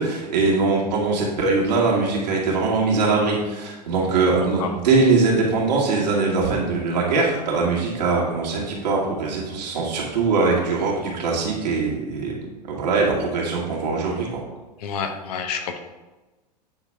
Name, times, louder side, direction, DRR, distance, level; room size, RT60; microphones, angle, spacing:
voice 1, 0.0-12.3 12.7-14.4, right 3 dB, 75° right, -3 dB, 2.3 m, -22 dB
voice 2, 14.8-15.8, left 6 dB, 65° left, 6 dB, 1.0 m, -28 dB
8.9 x 4.1 x 3.6 m, 1.1 s
hypercardioid pair, 100°, 21 cm